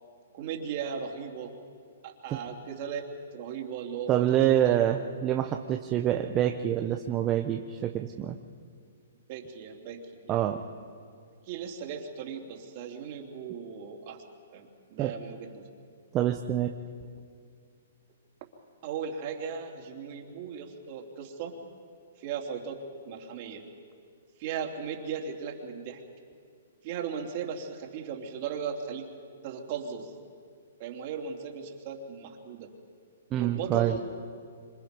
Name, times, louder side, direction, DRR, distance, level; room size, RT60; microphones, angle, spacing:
voice 1, 0.3-1.6 2.0-3.0 3.3-4.3 4.6-4.8 9.3-10.4 11.4-14.2 14.5-15.7 18.8-21.6 22.2-23.7 24.4-26.0 26.8-29.1 29.4-30.1 30.8-32.7 33.4-34.0, right 7 dB, 45° right, 2 dB, 3.4 m, -37 dB
voice 2, 4.1-8.4 10.3-10.6 15.0-15.1 16.1-16.7 33.3-33.9, right 11 dB, 25° right, 4 dB, 1.1 m, -26 dB
26.5 x 26.0 x 5.4 m, 2.2 s
hypercardioid pair, 130°, 0 cm